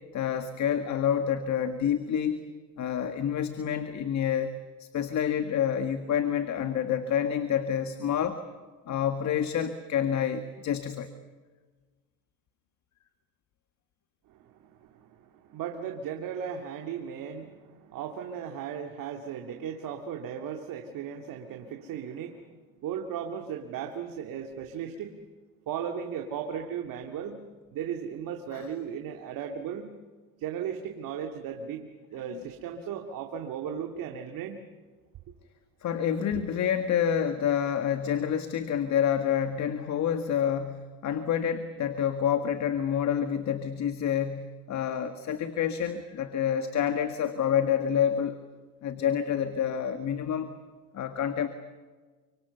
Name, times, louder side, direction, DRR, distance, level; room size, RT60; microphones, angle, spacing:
voice 1, 0.1-2.4 2.8-4.5 4.8-8.4 8.9-11.1 28.5-28.7 32.3-32.4 35.8-48.4 48.8-50.5 50.9-51.5, left 8 dB, 50° left, 8 dB, 1.7 m, -28 dB
voice 2, 14.3-25.2 25.7-27.4 27.7-29.9 30.4-34.6, right 8 dB, 65° right, 4 dB, 2.3 m, -36 dB
29.5 x 25.5 x 6.9 m, 1.4 s
supercardioid pair, 100°, 35 cm